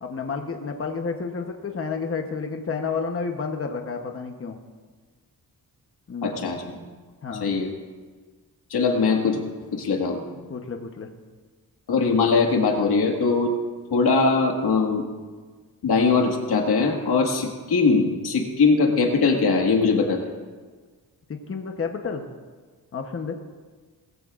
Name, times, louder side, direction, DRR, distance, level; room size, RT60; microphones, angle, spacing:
voice 1, 0.0-4.6 6.1-6.5 7.2-7.5 10.5-11.1 21.3-22.3 22.9-23.3, left 5 dB, 35° left, 4 dB, 1.0 m, -30 dB
voice 2, 6.2-6.8 7.4-7.7 8.7-9.4 9.7-10.2 11.9-13.5 13.9-15.1 15.8-20.2, left 4 dB, 85° left, 2 dB, 1.9 m, -21 dB
19.5 x 15.0 x 2.5 m, 1.5 s
wide cardioid pair, 140°, 38 cm